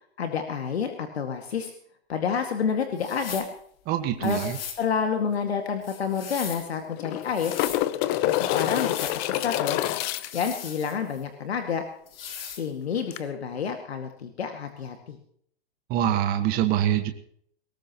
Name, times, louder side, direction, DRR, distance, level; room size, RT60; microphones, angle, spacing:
voice 1, 0.2-1.7 2.1-3.5 4.2-4.4 4.8-7.5 8.2-9.8 10.3-11.8 12.6-15.2, left 6 dB, 80° left, 5 dB, 2.2 m, -29 dB
sound 1, 3.0-3.5 4.2-4.8 5.8-6.7 7.2-7.8 8.6-9.2 10.2-11.2 12.1-12.7, left 8 dB, 65° left, 3.8 m, -39 dB
voice 2, 3.9-4.6 15.9-17.1, right 11 dB, 30° right, 6 dB, 1.6 m, -24 dB
sound 2, 5.3-5.4 5.7-5.8 6.8-10.5 13.1-13.2, left 14 dB, 30° left, 0.8 m, -27 dB
20.5 x 18.0 x 3.1 m, 0.63 s
hypercardioid pair, 130°, 31 cm